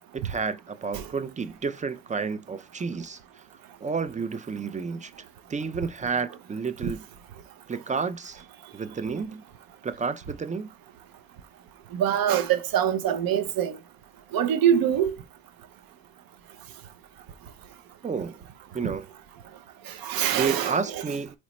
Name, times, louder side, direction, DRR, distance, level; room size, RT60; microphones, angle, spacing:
voice 1, 0.1-3.2 3.8-5.1 5.5-7.0 7.7-8.4 8.7-9.4 9.8-10.7 18.0-18.4 18.7-19.1 20.1-21.4, right 5 dB, 20° right, 0.4 m, -31 dB
voice 2, 11.9-13.8 14.3-15.1 19.9-20.8, right 9 dB, 60° right, 0.7 m, -24 dB
4.0 x 3.1 x 3.0 m
supercardioid pair, 60°, 39 cm